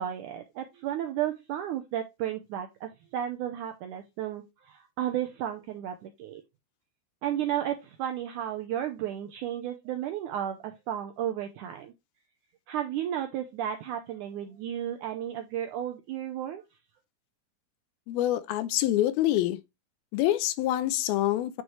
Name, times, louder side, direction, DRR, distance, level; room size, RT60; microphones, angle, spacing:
voice 1, 0.0-6.4 7.2-11.9 12.7-16.6, right 11 dB, 80° right, 1.8 m, -33 dB
voice 2, 18.1-19.6 20.1-21.6, left 14 dB, 80° left, 2.5 m, -26 dB
9.5 x 4.7 x 3.2 m
omnidirectional pair, 4.4 m